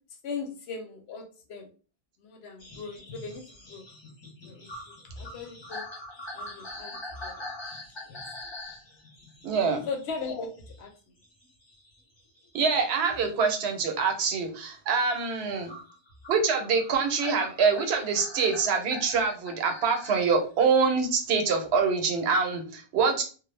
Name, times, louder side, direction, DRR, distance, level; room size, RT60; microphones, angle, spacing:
voice 1, 0.2-1.2 1.5-1.7 2.2-3.4 3.7-3.8 4.4-5.9 6.3-7.0 7.2-7.3 8.1-8.2 9.9-10.5 10.8-10.9 15.6-15.7, left 5 dB, 80° left, 4 dB, 0.9 m, -38 dB
sound 1, 2.6-10.9 11.2-13.6 14.0-14.5 15.7-20.3 21.6-21.7, left 1 dB, 30° left, 0.6 m, -43 dB
voice 2, 9.4-9.9 12.5-15.7 16.3-23.2, right 5 dB, 85° right, 4 dB, 0.9 m, -25 dB
2.3 x 2.0 x 3.1 m, 0.37 s
omnidirectional pair, 1.1 m